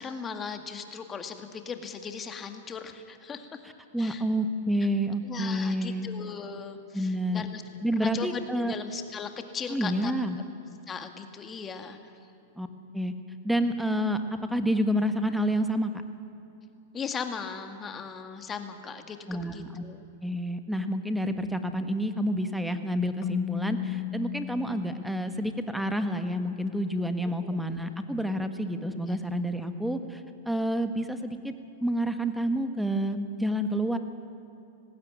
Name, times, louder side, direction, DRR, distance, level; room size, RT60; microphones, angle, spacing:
voice 1, 0.0-3.6 4.0-4.2 5.2-7.6 8.0-10.1 10.9-12.1 16.9-20.0 27.4-27.5 28.8-29.2, left 6 dB, 20° left, 7 dB, 2.0 m, -38 dB
voice 2, 3.9-6.1 6.9-7.5 7.8-8.7 9.7-10.4 12.6-12.7 12.9-13.1 13.4-14.2 14.5-15.9 19.3-19.8 20.2-31.5 31.8-34.0, equal, ahead, 8 dB, 1.5 m, -29 dB
Keyboard (musical), 23.2-26.0, left 18 dB, 40° left, 0.4 m, -35 dB
19.5 x 16.0 x 9.6 m, 2.8 s
hypercardioid pair, 115°, 0 cm